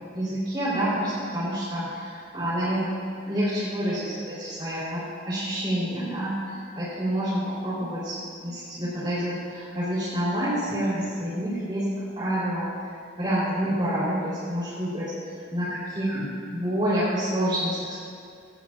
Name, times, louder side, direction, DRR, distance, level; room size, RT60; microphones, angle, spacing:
voice 1, 0.1-2.9 3.3-12.7 13.2-15.1 15.5-18.0, equal, 25° right, -11 dB, 3.7 m, -28 dB
18.5 x 18.0 x 2.5 m, 2.2 s
head